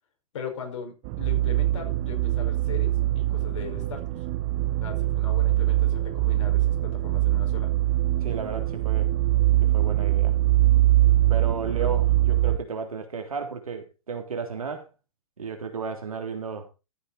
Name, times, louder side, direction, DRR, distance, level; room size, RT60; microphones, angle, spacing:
voice 1, 0.3-4.2 4.8-7.7 11.8-11.9, left 6 dB, 55° left, 4 dB, 5.2 m, -39 dB
sound 1, 1.0-12.6, right 15 dB, 35° right, 0.9 m, -23 dB
voice 2, 8.2-9.1 9.6-10.4 11.3-14.9 15.4-16.7, right 5 dB, 75° right, 4 dB, 3.4 m, -33 dB
14.5 x 8.3 x 4.0 m, 0.29 s
figure-of-eight pair, 120°, 18 cm